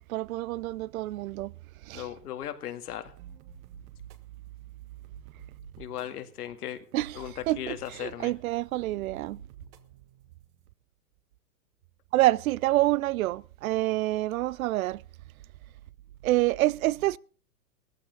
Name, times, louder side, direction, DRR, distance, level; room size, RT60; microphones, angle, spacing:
voice 1, 0.0-1.5 1.9-2.1 6.9-7.1 7.5-9.4 12.1-15.0 16.2-17.2, right 17 dB, 65° right, 0.6 m, -27 dB
voice 2, 1.9-3.1 5.8-6.8 7.1-8.3, left 11 dB, 75° left, 2.0 m, -37 dB
sound 1, 3.2-10.7, right 6 dB, 50° right, 1.6 m, -52 dB
17.0 x 14.5 x 3.9 m
hypercardioid pair, 125°, 46 cm